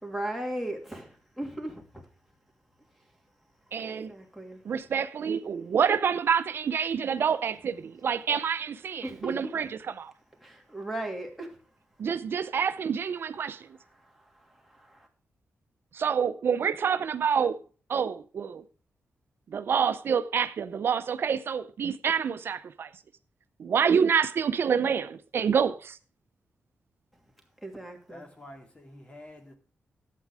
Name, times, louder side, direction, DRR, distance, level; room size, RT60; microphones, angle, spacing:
voice 1, 0.0-1.1 1.4-1.8 3.8-4.6 9.0-9.3 10.4-11.5 27.6-28.3, right 1 dB, ahead, 2.7 m, -36 dB
voice 2, 3.7-4.1 4.6-10.1 12.0-13.7 15.9-17.6 17.9-18.6 19.5-22.9 23.6-26.0, right 7 dB, 65° right, 0.6 m, -27 dB
voice 3, 28.1-29.5, left 1 dB, 30° left, 2.4 m, -48 dB
11.5 x 8.4 x 4.8 m
wide cardioid pair, 105°, 4 cm